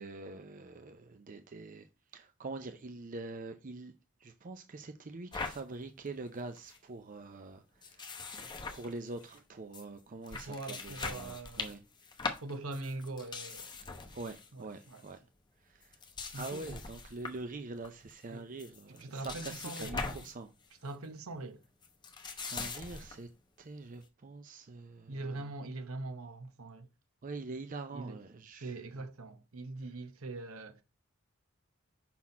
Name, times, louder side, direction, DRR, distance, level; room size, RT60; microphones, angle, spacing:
voice 1, 0.0-3.9 4.2-8.4 8.7-11.8 14.1-15.3 15.6-16.0 16.3-20.5 22.3-23.3 23.6-25.5 27.2-29.1, right 3 dB, 40° right, 0.5 m, -44 dB
sound 1, 5.3-5.6 6.1-6.2 6.4-6.8 7.8-9.4 9.7-9.8 10.2-14.5 14.8-15.1 15.8-17.4 17.8-18.2 18.6-20.4 20.6-20.9 21.8-23.2, left 4 dB, 20° left, 0.8 m, -42 dB
voice 2, 10.5-11.8 12.4-13.7 14.5-15.0 16.3-16.8 18.3-18.5 19.0-20.2 20.8-21.6 25.1-26.9 27.9-28.2 28.6-30.8, right 2 dB, 75° right, 0.9 m, -42 dB
5.9 x 4.1 x 4.2 m
head